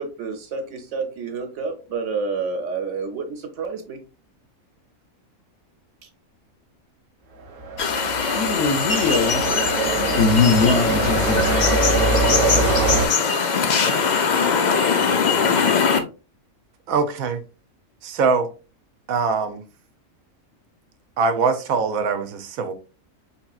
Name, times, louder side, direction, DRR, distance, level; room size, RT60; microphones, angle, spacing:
voice 1, 0.0-4.0, right 4 dB, 65° right, 1.0 m, -29 dB
sound 1, 7.5-13.1, right 3 dB, 45° right, 0.8 m, -23 dB
sound 2, 7.8-16.0, left 5 dB, 90° left, 0.4 m, -21 dB
voice 2, 8.3-9.4 9.9-11.8, left 5 dB, 65° left, 0.8 m, -21 dB
voice 3, 16.9-17.4 18.0-18.5 19.1-19.6 21.2-22.7, right 4 dB, 90° right, 1.1 m, -22 dB
4.7 x 2.8 x 2.3 m
omnidirectional pair, 1.4 m